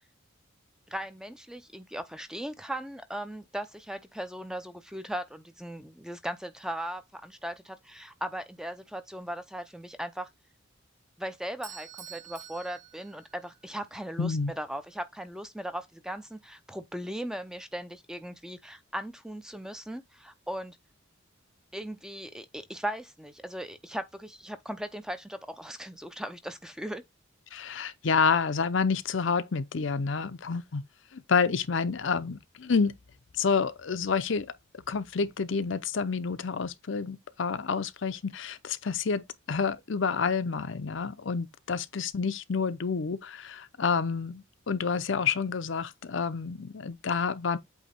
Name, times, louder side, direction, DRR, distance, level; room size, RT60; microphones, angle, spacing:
voice 1, 0.9-10.3 11.2-20.8 21.7-27.0, equal, 5° right, 0.5 m, -38 dB
Bell / Doorbell, 11.6-13.7, right 9 dB, 35° right, 1.0 m, -47 dB
voice 2, 14.2-14.5 27.5-30.8 31.1-32.9 33.4-34.5 34.9-47.6, left 5 dB, 60° left, 0.6 m, -29 dB
8.2 x 2.8 x 4.2 m
head